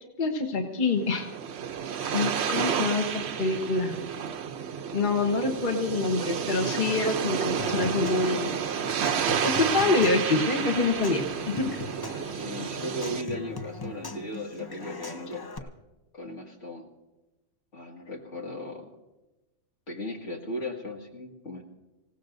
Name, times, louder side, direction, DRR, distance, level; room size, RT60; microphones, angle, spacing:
voice 1, 0.2-1.3 2.1-3.9 4.9-8.6 9.4-11.7, left 3 dB, 40° left, 3 dB, 1.3 m, -26 dB
sound 1, 1.0-13.2, right 8 dB, 60° right, 0.9 m, -31 dB
Human voice / Acoustic guitar / Percussion, 7.6-15.6, left 3 dB, 25° left, 0.6 m, -40 dB
voice 2, 12.3-15.7 16.1-16.9 17.7-18.9 19.9-21.6, left 1 dB, 70° left, 0 dB, 2.3 m, -37 dB
26.0 x 16.5 x 2.6 m, 1.1 s
omnidirectional pair, 1.3 m